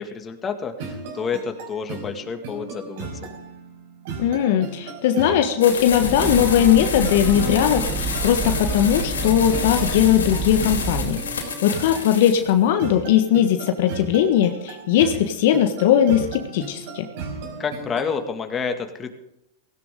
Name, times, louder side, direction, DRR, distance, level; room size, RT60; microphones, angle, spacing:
voice 1, 0.0-3.3 17.6-19.1, left 6 dB, 25° left, 6 dB, 2.2 m, -29 dB
sound 1, 0.8-18.2, right 4 dB, 60° right, 5.3 m, -36 dB
voice 2, 4.2-11.2 11.6-17.0, left 10 dB, 60° left, 7 dB, 1.5 m, -19 dB
sound 2, 5.6-12.5, left 6 dB, 85° left, 3.9 m, -30 dB
Breathing / Train, 5.8-11.3, right 4 dB, 15° right, 3.3 m, -29 dB
17.0 x 16.5 x 3.8 m, 0.85 s
hypercardioid pair, 105°, 0 cm